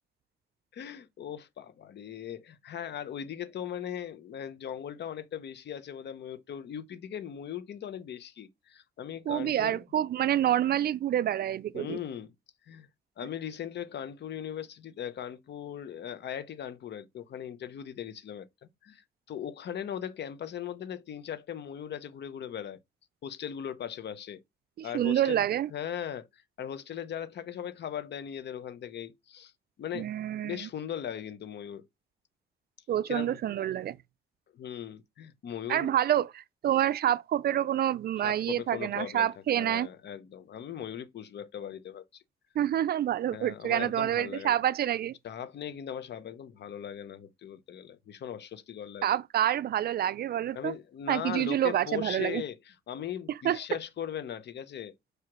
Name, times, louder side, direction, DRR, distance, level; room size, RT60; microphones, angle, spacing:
voice 1, 0.7-9.8 11.7-12.3 12.6-12.9 13.2-18.5 18.8-22.8 23.2-24.4 24.8-25.4 25.7-29.5 29.8-30.1 30.4-31.9 33.1-33.4 34.5-35.9 38.2-42.2 43.3-44.6 45.2-49.2 50.5-54.9, left 9 dB, 60° left, 0.9 m, -39 dB
voice 2, 9.3-12.0 24.8-25.7 29.9-30.7 32.9-34.0 35.7-39.9 42.6-45.1 49.0-50.7 51.1-52.4 53.4-53.6, right 11 dB, 50° right, 0.4 m, -27 dB
4.8 x 4.8 x 6.0 m
cardioid pair, 90°, 20 cm